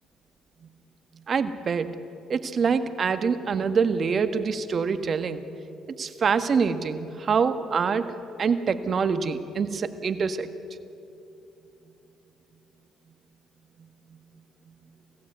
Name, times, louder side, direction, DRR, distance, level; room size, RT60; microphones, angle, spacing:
voice 1, 1.3-2.0 2.3-5.4 6.0-8.1 8.4-10.5, right 5 dB, 50° right, 10 dB, 1.6 m, -25 dB
26.5 x 16.0 x 9.4 m, 2.9 s
supercardioid pair, 60°, 0 cm